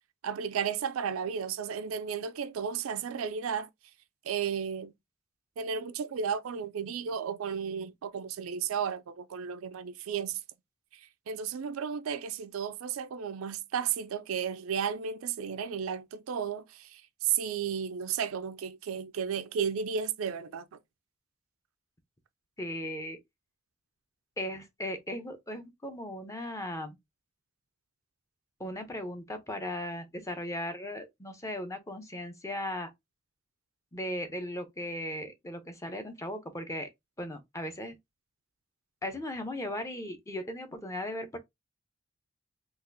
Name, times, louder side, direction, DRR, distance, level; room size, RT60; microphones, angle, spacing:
voice 1, 0.2-3.7 4.2-4.9 5.6-10.4 11.3-20.7, right 7 dB, 90° right, 0.4 m, -33 dB
voice 2, 22.6-23.2 24.4-27.0 28.6-32.9 33.9-36.9 37.2-38.0 39.0-41.4, left 1 dB, 15° left, 0.6 m, -37 dB
4.0 x 2.4 x 2.6 m
head